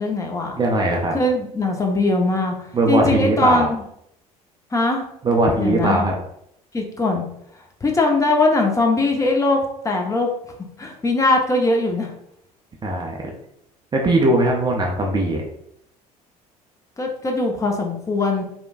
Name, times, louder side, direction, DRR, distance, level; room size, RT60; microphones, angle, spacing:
voice 1, 0.0-0.6 1.1-2.5 2.9-3.8 4.7-5.0 5.6-6.1 6.7-7.2 7.8-9.6 9.8-10.3 10.8-12.1 17.0-18.4, left 2 dB, 15° left, 1 dB, 0.7 m, -20 dB
voice 2, 0.6-1.1 2.7-3.7 5.2-6.1 12.8-13.2 13.9-15.4, right 2 dB, 20° right, 0 dB, 0.5 m, -19 dB
3.2 x 2.1 x 2.5 m, 0.74 s
figure-of-eight pair, 60°, 19 cm